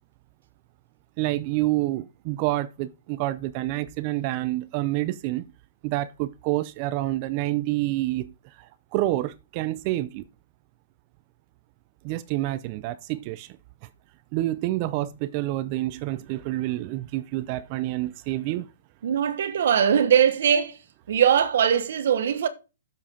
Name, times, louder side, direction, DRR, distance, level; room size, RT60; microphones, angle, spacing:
voice 1, 1.2-5.5 5.8-10.2 12.0-13.6 14.3-18.7, right 16 dB, 30° right, 0.4 m, -28 dB
voice 2, 19.0-20.8 21.1-22.5, right 8 dB, 60° right, 1.1 m, -21 dB
7.9 x 7.3 x 5.0 m
hypercardioid pair, 160°, 0 cm